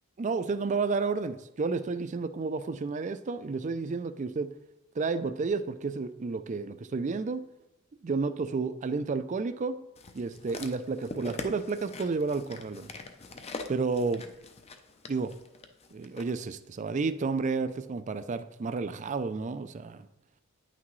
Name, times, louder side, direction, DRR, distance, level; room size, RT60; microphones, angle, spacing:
voice 1, 0.2-4.5 5.0-7.4 8.0-9.8 10.1-12.9 13.7-14.2 15.1-15.3 15.9-20.1, right 4 dB, 35° right, 12 dB, 0.4 m, -31 dB
sound 1, 10.0-16.3 17.1-17.2, left 3 dB, 30° left, 0.5 m, -43 dB
9.6 x 5.9 x 3.1 m, 0.91 s
head